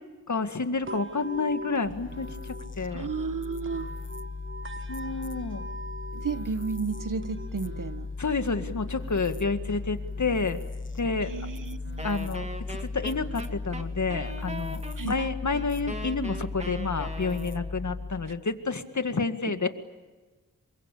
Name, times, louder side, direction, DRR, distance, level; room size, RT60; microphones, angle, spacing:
voice 1, 0.3-3.1 4.9-5.7 8.2-10.6 10.9-11.3 12.0-19.7, left 4 dB, 60° left, 2.0 m, -29 dB
sound 1, 0.8-14.8, right 1 dB, 35° right, 1.2 m, -45 dB
sound 2, 1.8-18.4, left 3 dB, 35° left, 1.1 m, -37 dB
voice 2, 2.9-3.9 6.1-8.1 11.2-12.1 14.9-15.2 18.3-18.4 19.4-19.5, right 5 dB, 70° right, 1.2 m, -33 dB
Wind instrument woodwind instrument, 12.0-17.8, equal, 20° right, 2.4 m, -40 dB
28.0 x 24.0 x 8.6 m
wide cardioid pair, 65°, 34 cm